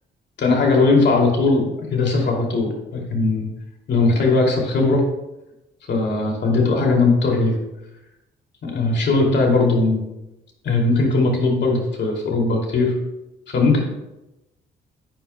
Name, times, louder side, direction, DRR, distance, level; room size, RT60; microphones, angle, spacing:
voice 1, 0.4-3.5 3.9-5.0 5.9-7.6 8.6-10.0 10.6-12.9 13.5-13.8, left 3 dB, 60° left, 0 dB, 2.6 m, -19 dB
11.0 x 8.9 x 2.2 m, 0.95 s
cardioid pair, 90°, 20 cm